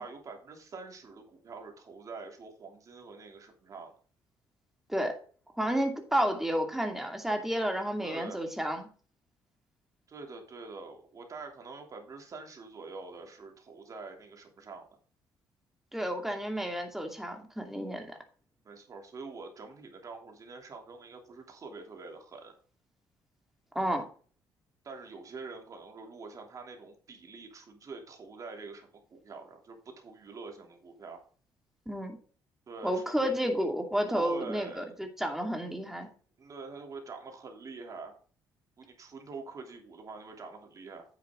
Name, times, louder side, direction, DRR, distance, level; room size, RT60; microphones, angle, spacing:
voice 1, 0.0-3.9 8.0-8.5 10.1-14.9 18.6-22.5 24.8-31.2 32.7-33.3 34.1-35.0 36.4-38.1 38.8-41.1, right 4 dB, 45° right, 3 dB, 3.1 m, -45 dB
voice 2, 5.6-8.9 15.9-18.1 23.7-24.0 31.9-32.2 32.8-36.1, equal, 5° right, 4 dB, 2.4 m, -31 dB
9.8 x 7.4 x 3.8 m, 0.41 s
cardioid pair, 100°, 8 cm